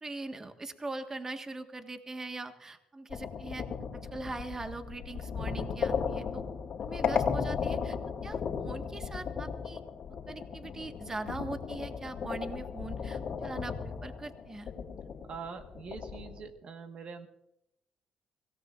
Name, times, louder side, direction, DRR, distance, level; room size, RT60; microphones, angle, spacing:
voice 1, 0.0-3.7 3.9-6.4 6.8-8.0 8.2-9.8 10.3-14.7, right 2 dB, 25° right, 7 dB, 1.5 m, -41 dB
sound 1, 3.1-16.5, left 6 dB, 60° left, 2.3 m, -35 dB
voice 2, 15.2-17.3, right 5 dB, 55° right, 7 dB, 1.5 m, -44 dB
25.0 x 17.5 x 2.5 m, 0.83 s
cardioid pair, 95°, 2 cm